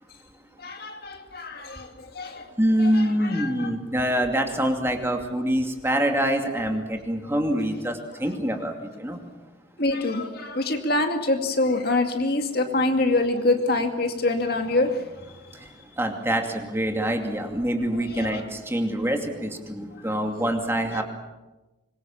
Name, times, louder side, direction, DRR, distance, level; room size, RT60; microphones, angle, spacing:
voice 1, 0.6-2.5 2.8-3.7 9.8-15.3 17.8-18.4 19.9-20.0 20.3-20.4 20.9-21.0, left 2 dB, 50° left, 5 dB, 2.3 m, -26 dB
voice 2, 2.6-9.2 15.5-15.7 16.0-21.0, equal, 10° right, 4 dB, 2.5 m, -25 dB
25.5 x 23.0 x 7.3 m, 1.1 s
head